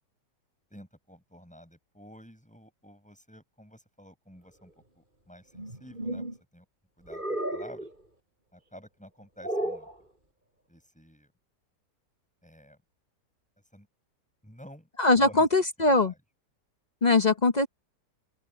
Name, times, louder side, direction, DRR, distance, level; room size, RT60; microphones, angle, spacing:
voice 1, 0.7-6.7 7.0-7.9 8.5-9.9 10.7-11.3 12.4-12.8 13.7-13.9 14.4-15.5 15.9-16.2, equal, 5° left, 7.5 m, -51 dB
sound 1, 5.6-6.4 7.1-7.9 9.4-9.9, right 1 dB, 25° right, 5.5 m, -33 dB
voice 2, 15.0-16.1 17.0-17.7, left 2 dB, 35° left, 0.7 m, -21 dB
open air
omnidirectional pair, 1.9 m